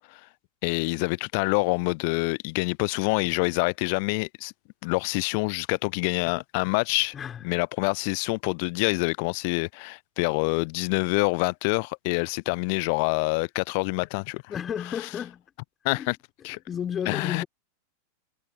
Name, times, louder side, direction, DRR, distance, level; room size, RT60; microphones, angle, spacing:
voice 1, 0.6-4.5 4.8-7.1 7.4-14.4 15.0-15.1 15.8-16.2 16.4-16.6 17.1-17.4, left 31 dB, 45° left, 0.7 m, -26 dB
voice 2, 14.5-15.4 15.9-16.1 16.7-17.5, left 8 dB, 25° left, 4.2 m, -32 dB
figure-of-eight pair, 90°, 0 cm